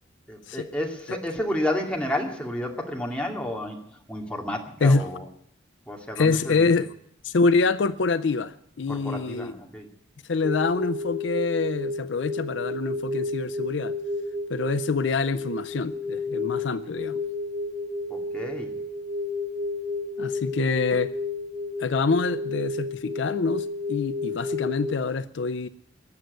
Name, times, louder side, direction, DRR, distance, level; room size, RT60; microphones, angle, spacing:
voice 1, 0.3-3.8 4.1-5.2 5.9-6.6 8.9-9.9 18.1-18.7, left 1 dB, 5° left, 2.2 m, -31 dB
voice 2, 6.2-6.9 7.2-9.5 10.3-13.9 14.5-17.2 20.2-21.1 21.8-25.7, left 4 dB, 65° left, 0.5 m, -25 dB
sound 1, 10.4-25.0, left 2 dB, 25° right, 5.3 m, -31 dB
19.5 x 7.8 x 9.4 m
head